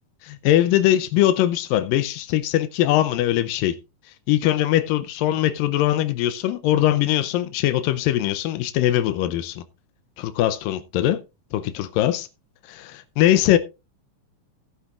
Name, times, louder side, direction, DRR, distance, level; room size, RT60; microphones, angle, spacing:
voice 1, 0.3-3.7 4.3-9.6 10.2-11.2 11.5-12.3 12.7-13.6, left 13 dB, 90° left, 2.4 m, -21 dB
15.5 x 9.8 x 2.4 m
omnidirectional pair, 3.9 m